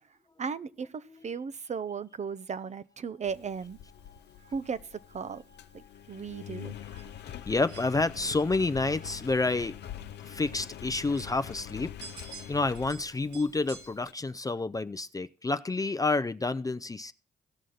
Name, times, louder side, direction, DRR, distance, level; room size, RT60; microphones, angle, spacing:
voice 1, 0.4-3.8 4.5-4.8 5.1-5.4 5.7-6.7, right 6 dB, 35° right, 0.5 m, -36 dB
sound 1, 2.2-13.9, right 4 dB, 70° right, 2.3 m, -54 dB
Engine, 3.2-14.1, left 11 dB, 60° left, 0.6 m, -45 dB
voice 2, 7.5-9.7 10.2-11.9 12.5-17.1, left 3 dB, 20° left, 0.5 m, -29 dB
17.0 x 6.2 x 3.9 m
supercardioid pair, 60°, 19 cm